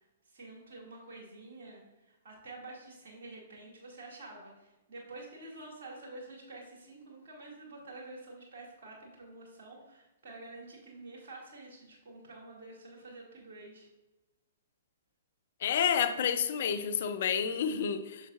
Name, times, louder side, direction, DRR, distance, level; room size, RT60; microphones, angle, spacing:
voice 1, 0.3-13.9, right 2 dB, 55° right, -1 dB, 2.4 m, -48 dB
voice 2, 15.6-18.3, left 8 dB, 55° left, 10 dB, 0.5 m, -29 dB
7.2 x 6.9 x 2.5 m, 1.1 s
figure-of-eight pair, 115°, 0 cm